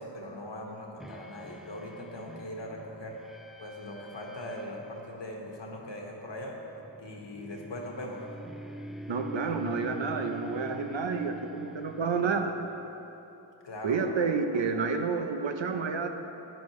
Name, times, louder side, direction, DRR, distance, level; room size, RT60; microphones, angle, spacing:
voice 1, 0.0-3.2 3.6-6.5 7.0-8.2 13.6-14.2, left 1 dB, 70° left, -1 dB, 1.6 m, -40 dB
sound 1, 1.0-13.1, equal, ahead, 0.4 m, -45 dB
voice 2, 9.1-12.6 13.8-16.1, right 5 dB, 75° right, 5 dB, 0.8 m, -29 dB
12.5 x 9.7 x 3.2 m, 3.0 s
wide cardioid pair, 60°, 45 cm